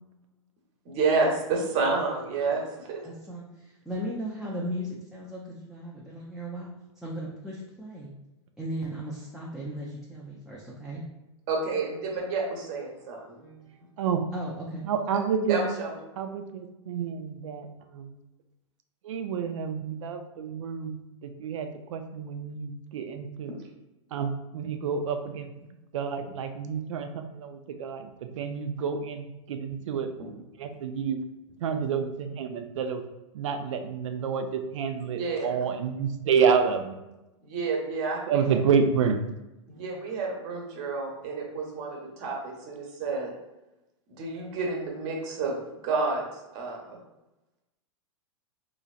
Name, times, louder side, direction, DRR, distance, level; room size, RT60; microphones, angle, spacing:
voice 1, 0.8-3.0 11.5-13.4 15.5-15.9 35.2-35.6 37.4-38.5 39.7-43.3 44.1-45.6 45.8-46.3 46.5-47.0, right 4 dB, 45° right, 0 dB, 1.1 m, -29 dB
voice 2, 3.0-8.1 8.6-11.0 13.4-13.8 14.3-14.9, equal, ahead, -6 dB, 0.5 m, -37 dB
voice 3, 14.8-15.6 16.2-18.2 19.0-21.0 21.4-23.5 24.1-25.5 25.9-30.1 30.6-31.2 31.6-33.0 33.3-37.0 38.3-39.2, right 6 dB, 75° right, 7 dB, 0.5 m, -29 dB
3.9 x 2.9 x 2.4 m, 1.0 s
hypercardioid pair, 125°, 16 cm